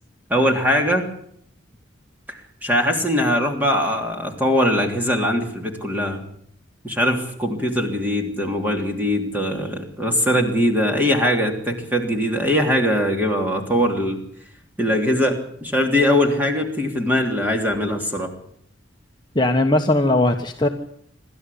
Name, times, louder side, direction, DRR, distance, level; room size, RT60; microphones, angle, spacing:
voice 1, 0.3-1.1 2.3-6.2 6.8-14.2 14.8-18.3, equal, 10° right, 2 dB, 3.2 m, -21 dB
voice 2, 19.3-20.7, left 1 dB, 25° left, 3 dB, 1.2 m, -18 dB
27.0 x 13.0 x 8.5 m, 0.71 s
head